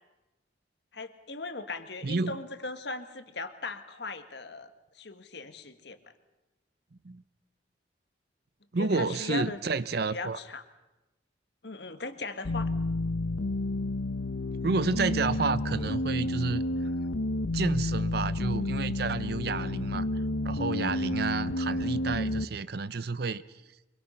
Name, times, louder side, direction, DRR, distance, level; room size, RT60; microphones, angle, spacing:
voice 1, 0.9-4.7 4.9-6.0 8.8-9.6 10.1-10.6 11.6-12.7, left 3 dB, 60° left, 1.7 m, -38 dB
voice 2, 2.0-2.4 7.0-7.2 8.7-10.4 14.6-16.9 17.5-20.1 20.4-23.4, right 4 dB, 55° right, 0.7 m, -30 dB
sound 1, 12.4-22.4, left 2 dB, 80° left, 0.8 m, -30 dB
24.5 x 23.0 x 5.8 m
head